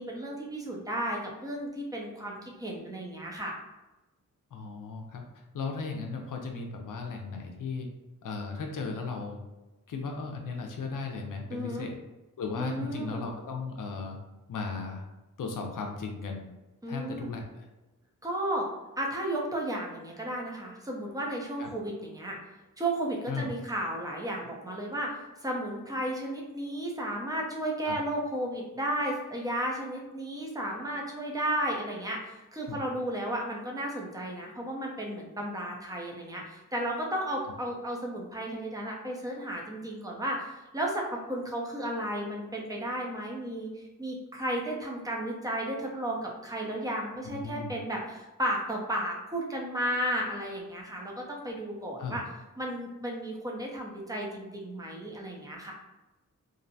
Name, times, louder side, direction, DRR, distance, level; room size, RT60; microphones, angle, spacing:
voice 1, 0.0-3.6 11.5-11.9 12.6-13.2 16.8-17.3 18.2-18.7 19.0-22.4 22.8-52.2 52.6-55.7, right 1 dB, 10° right, -2 dB, 0.6 m, -33 dB
voice 2, 4.5-5.2 5.5-7.9 8.2-9.4 9.9-11.9 12.4-14.2 14.5-15.0 15.4-16.4 16.9-17.6 21.6-21.7 23.3-23.5 27.8-28.0 32.7-32.8 47.3-47.8 52.0-52.2, left 4 dB, 75° left, 2 dB, 0.5 m, -36 dB
2.6 x 2.0 x 2.6 m, 1.0 s
wide cardioid pair, 70°, 32 cm